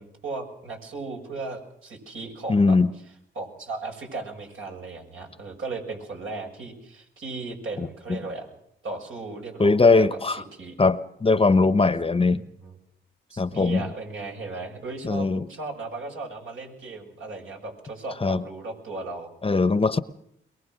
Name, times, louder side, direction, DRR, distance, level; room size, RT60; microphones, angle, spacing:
voice 1, 0.0-2.8 3.3-8.5 8.8-10.8 12.6-12.8 13.3-19.3, right 3 dB, 70° right, 1 dB, 6.7 m, -36 dB
voice 2, 2.5-2.9 7.8-8.2 9.6-10.4 10.8-12.4 13.4-13.8 15.0-15.5 18.2-18.4 19.4-20.0, left 3 dB, 25° left, 14 dB, 1.0 m, -20 dB
23.0 x 22.5 x 6.4 m, 0.74 s
cardioid pair, 70°, 21 cm